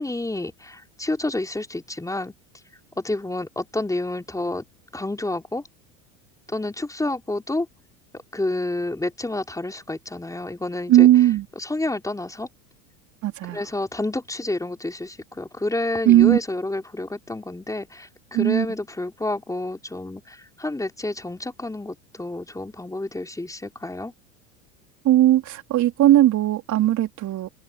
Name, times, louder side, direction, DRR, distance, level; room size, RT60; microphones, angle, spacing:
voice 1, 0.0-2.3 3.0-4.6 4.9-5.6 6.5-7.7 8.3-11.1 11.6-12.5 13.5-24.1, left 2 dB, 10° left, 4.4 m, -29 dB
voice 2, 10.9-11.4 13.2-13.6 16.0-16.4 18.3-18.7 25.0-27.5, right 14 dB, 45° right, 3.2 m, -17 dB
open air
hypercardioid pair, 85°, 41 cm